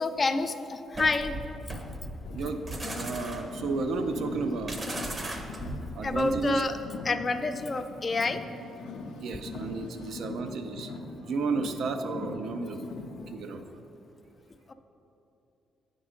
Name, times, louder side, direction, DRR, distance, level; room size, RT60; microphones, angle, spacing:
voice 1, 0.0-1.3 6.0-6.8 7.0-8.4 14.7-14.8, left 3 dB, 35° left, 9 dB, 0.4 m, -28 dB
sound 1, 0.9-6.6, right 1 dB, 30° right, 0.7 m, -38 dB
Car, 2.2-13.3, left 3 dB, 85° left, 0.6 m, -41 dB
voice 2, 2.3-4.8 5.9-6.6 9.2-10.9 11.2-12.8 13.3-13.6, right 4 dB, 70° right, 7 dB, 0.5 m, -32 dB
8.7 x 3.7 x 5.1 m, 2.9 s
cardioid pair, 90°, 0 cm